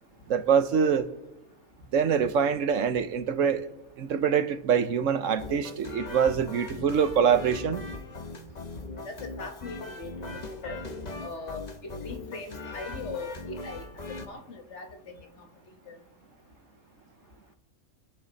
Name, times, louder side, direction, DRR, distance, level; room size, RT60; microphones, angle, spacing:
voice 1, 0.3-1.1 1.9-3.7 4.0-7.8, right 7 dB, 70° right, 1.2 m, -24 dB
sound 1, 5.4-14.3, left 2 dB, 35° left, 1.0 m, -40 dB
voice 2, 9.0-10.8 11.2-13.9 14.3-15.3 15.9-16.0, left 3 dB, 60° left, 1.5 m, -40 dB
24.5 x 10.5 x 4.1 m
omnidirectional pair, 1.4 m